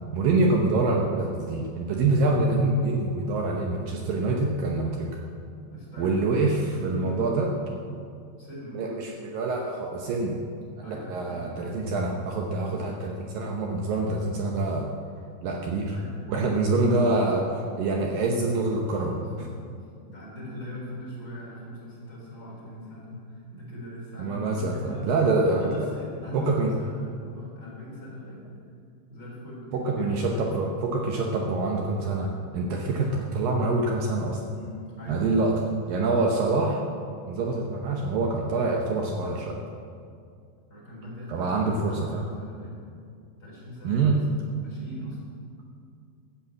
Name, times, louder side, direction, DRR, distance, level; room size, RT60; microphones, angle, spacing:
voice 1, 0.1-5.1 6.0-7.5 8.8-10.4 10.9-14.9 15.4-16.0 16.3-19.1 24.2-25.7 26.3-26.7 29.7-34.4 35.1-35.5 35.9-36.8 37.3-39.6 41.3-42.3 43.8-44.2 45.0-45.2, right 3 dB, 70° right, 1 dB, 2.5 m, -25 dB
voice 2, 5.6-7.5 8.4-8.9 10.8-11.6 13.9-14.1 15.8-16.5 18.8-19.5 19.8-25.1 25.4-28.6 29.1-30.5 34.5-35.7 39.2-39.7 40.7-42.9 43.4-44.1 44.4-45.2, left 1 dB, 20° left, -6 dB, 4.2 m, -41 dB
13.0 x 8.6 x 8.3 m, 2.3 s
omnidirectional pair, 4.5 m